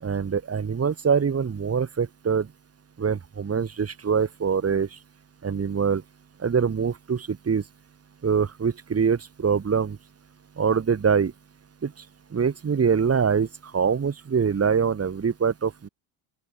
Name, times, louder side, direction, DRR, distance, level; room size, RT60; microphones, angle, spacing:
voice 1, 0.0-2.5 3.0-4.9 5.4-6.0 6.4-7.6 8.2-10.0 10.6-11.3 11.8-11.9 12.3-13.5 13.7-15.9, right 6 dB, 35° right, 4.1 m, -24 dB
open air
supercardioid pair, 70°, 42 cm